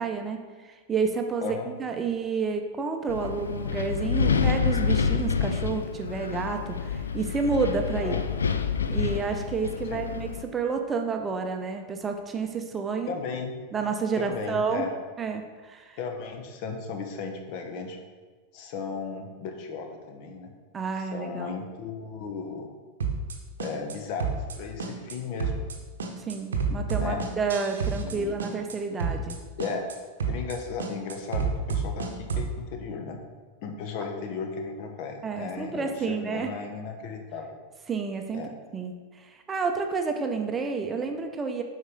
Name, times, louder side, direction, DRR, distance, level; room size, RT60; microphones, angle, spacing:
voice 1, 0.0-8.2 8.9-13.1 13.7-14.8 15.2-16.0 20.7-21.5 26.2-29.4 35.2-36.5 37.9-38.4 38.7-41.6, right 5 dB, 20° right, 4 dB, 0.7 m, -30 dB
Wind, 3.1-10.4, left 6 dB, 70° left, 0.4 m, -28 dB
voice 2, 13.1-13.5 14.2-14.9 16.0-18.0 18.5-20.5 21.1-22.7 23.6-25.5 27.0-27.2 27.9-28.4 29.1-29.2 29.6-29.9 30.2-33.2 33.6-37.6 38.3-38.5, left 5 dB, 45° left, 4 dB, 1.0 m, -35 dB
sound 1, 23.0-23.4 23.6-24.0 24.2-24.6 24.8-25.2 25.4-25.8 26.0-28.2 28.4-28.8 29.0-29.4 29.6-30.0 30.2-30.6 30.8-32.5, right 5 dB, 65° right, 0.8 m, -29 dB
8.0 x 5.5 x 3.7 m, 1.4 s
figure-of-eight pair, 90°, 0 cm